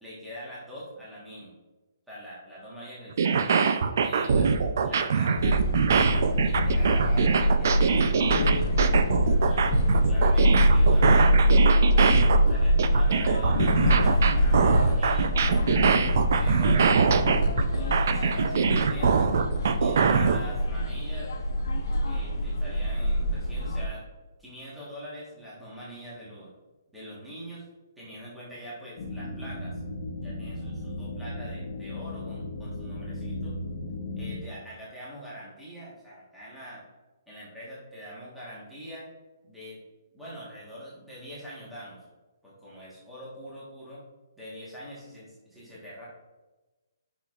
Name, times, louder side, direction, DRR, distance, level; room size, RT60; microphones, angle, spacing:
voice 1, 0.0-1.5 2.1-3.6 4.0-5.6 6.4-9.0 9.4-11.5 12.5-17.0 17.7-19.4 19.8-21.3 22.1-24.1 24.4-26.5 26.9-27.6 28.0-29.8 30.2-33.5 34.2-36.8 37.3-39.1 39.4-39.8 40.1-42.0 42.4-44.0 44.4-46.0, equal, ahead, -9 dB, 1.3 m, -43 dB
sound 1, 3.1-20.4, right 5 dB, 40° right, 0.4 m, -24 dB
sound 2, 5.4-23.9, equal, 55° left, 1.2 m, -24 dB
sound 3, 29.0-34.4, left 1 dB, 35° left, 0.8 m, -36 dB
11.0 x 6.2 x 2.4 m, 1.2 s
hypercardioid pair, 180°, 2 cm